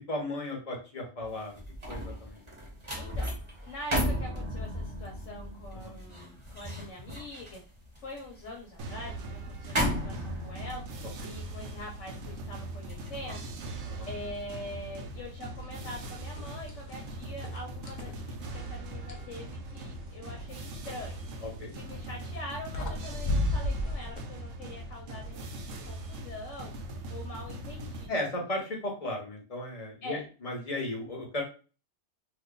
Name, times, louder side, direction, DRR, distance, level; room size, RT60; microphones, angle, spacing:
voice 1, 0.1-1.6 1.9-2.4 5.8-5.9 13.8-14.1 21.4-21.7 28.1-31.4, left 1 dB, 30° left, -1 dB, 1.0 m, -35 dB
sound 1, 1.3-14.6 15.0-15.3, equal, 25° right, 0.9 m, -36 dB
voice 2, 3.0-3.3 3.6-7.6 8.0-13.5 14.1-21.3 21.7-26.7 27.1-28.1 30.0-30.2, left 1 dB, 70° left, 1 dB, 1.1 m, -44 dB
sound 2, 8.8-28.1, right 2 dB, 80° right, 1.0 m, -41 dB
sound 3, 15.8-16.0 16.4-17.0 17.4-19.3 21.5-21.8 22.4-22.5 22.7-24.2, left 2 dB, 50° left, 0.5 m, -33 dB
2.9 x 2.3 x 3.7 m, 0.35 s
omnidirectional pair, 1.3 m